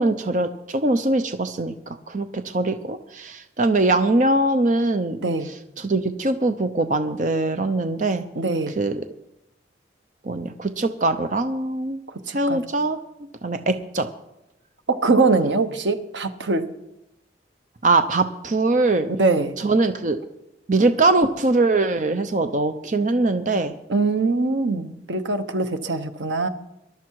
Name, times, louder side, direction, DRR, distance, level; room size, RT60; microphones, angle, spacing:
voice 1, 0.0-1.7 2.1-5.2 5.8-8.2 8.8-9.0 10.3-12.0 12.3-13.0 13.4-14.1 17.8-19.1 19.6-20.2 20.7-23.7, right 2 dB, 45° right, 8 dB, 0.7 m, -22 dB
voice 2, 8.3-8.7 12.3-12.6 14.9-16.7 19.1-19.5 23.9-26.5, right 3 dB, 80° right, 9 dB, 1.1 m, -22 dB
20.0 x 12.0 x 4.7 m, 0.90 s
head